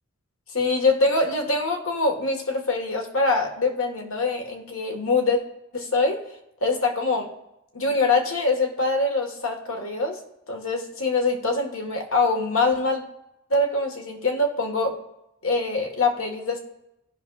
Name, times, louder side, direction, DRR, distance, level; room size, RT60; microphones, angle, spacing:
voice 1, 0.5-5.4 5.7-6.2 6.6-7.3 7.7-10.2 10.5-13.0 13.5-15.0 15.4-16.6, left 3 dB, 75° left, 3 dB, 1.5 m, -24 dB
17.0 x 5.9 x 2.4 m, 0.88 s
head